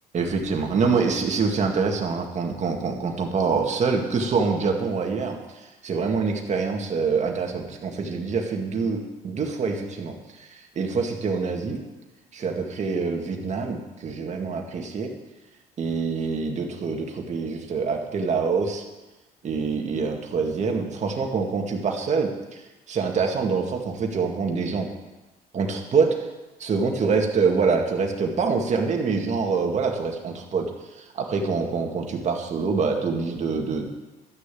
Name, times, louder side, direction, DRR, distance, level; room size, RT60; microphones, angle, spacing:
voice 1, 0.1-11.8 12.3-15.1 15.8-18.8 19.4-24.9 25.5-26.2 26.6-30.7 31.0-33.9, right 5 dB, 45° right, 2 dB, 2.1 m, -25 dB
12.5 x 6.6 x 8.5 m, 1.1 s
cardioid pair, 110°, 17 cm